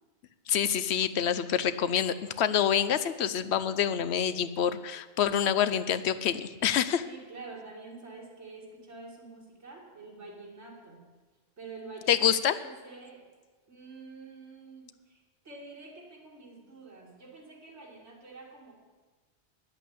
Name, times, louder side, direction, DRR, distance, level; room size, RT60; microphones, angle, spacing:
voice 1, 0.5-7.0 12.1-12.6, left 9 dB, 70° left, 13 dB, 0.9 m, -27 dB
voice 2, 7.0-11.1 11.6-13.3 13.7-18.7, right 3 dB, 85° right, -3 dB, 2.5 m, -47 dB
10.0 x 8.2 x 8.4 m, 1.3 s
omnidirectional pair, 1.2 m